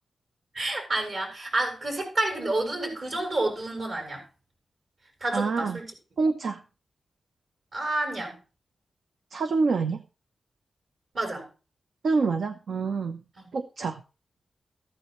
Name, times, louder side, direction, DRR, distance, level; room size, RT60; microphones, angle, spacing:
voice 1, 0.5-4.2 5.2-5.9 7.7-8.4 11.1-11.4, right 2 dB, 55° right, 7.1 m, -29 dB
voice 2, 5.3-5.8 6.2-6.6 9.3-10.0 12.0-13.2 13.5-14.0, right 4 dB, 75° right, 0.9 m, -26 dB
14.5 x 12.5 x 3.2 m
wide cardioid pair, 105°, 0 cm